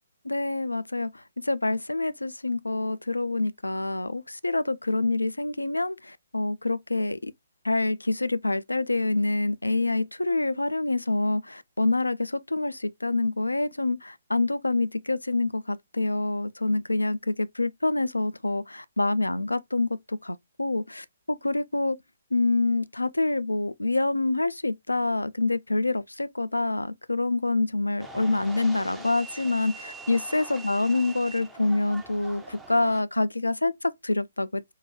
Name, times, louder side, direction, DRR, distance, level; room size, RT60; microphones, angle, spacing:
voice 1, 0.2-7.3 7.6-22.0 22.3-34.7, left 2 dB, 85° left, 0.3 m, -26 dB
sound 1, 28.0-33.0, right 3 dB, 10° right, 0.5 m, -43 dB
4.6 x 2.2 x 2.8 m
figure-of-eight pair, 135°, 0 cm